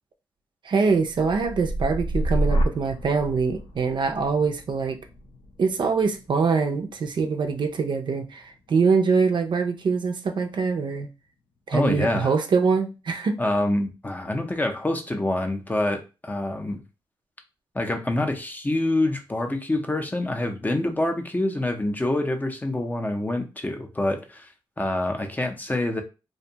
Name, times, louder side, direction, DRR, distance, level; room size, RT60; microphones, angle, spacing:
voice 1, 0.6-5.0 5.6-11.1 11.7-13.4, right 5 dB, 55° right, 0.4 m, -24 dB
sound 1, 1.0-8.9 9.4-9.8, right 1 dB, 65° left, 0.5 m, -30 dB
voice 2, 11.7-12.3 13.4-16.8 17.7-24.5 24.8-26.0, left 1 dB, 20° left, 0.5 m, -26 dB
2.6 x 2.1 x 2.8 m
cardioid pair, 70°, 9 cm